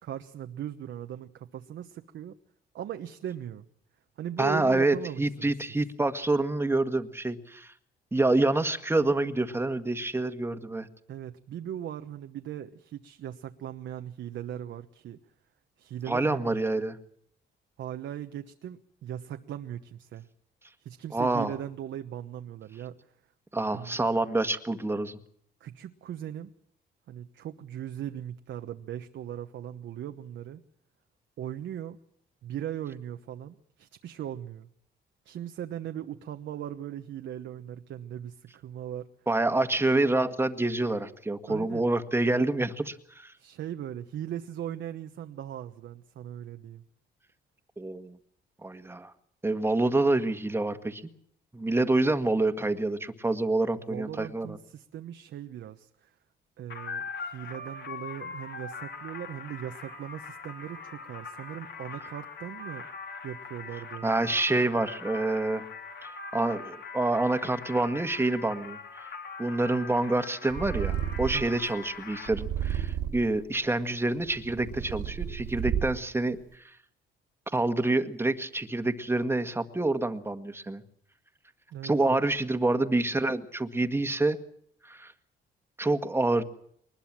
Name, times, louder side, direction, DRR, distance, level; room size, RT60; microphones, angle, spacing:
voice 1, 0.0-2.4 2.7-3.7 4.2-5.5 11.1-15.2 15.8-16.5 17.8-20.3 20.8-23.0 23.7-24.0 25.6-26.5 27.1-30.6 31.4-32.0 32.4-34.7 35.2-39.1 41.5-41.9 43.4-46.8 53.9-56.1 56.6-62.9 63.2-64.1 71.3-71.5 81.7-82.2, right 10 dB, 70° right, 1.1 m, -39 dB
voice 2, 4.4-7.7 8.1-10.9 16.1-17.0 21.1-21.5 23.5-25.2 39.3-43.3 47.8-48.2 48.6-49.1 49.4-51.0 51.5-54.6 64.0-65.6 66.0-69.1 69.4-76.7 77.5-80.8 81.8-84.4 84.8-85.1 85.8-86.4, right 2 dB, 10° right, 1.7 m, -27 dB
sound 1, 56.7-72.3, left 4 dB, 65° left, 4.6 m, -41 dB
Purr, 70.5-71.6 72.3-73.4 74.1-76.2, right 10 dB, 90° right, 2.8 m, -32 dB
22.5 x 20.5 x 7.5 m
cardioid pair, 90°, 20 cm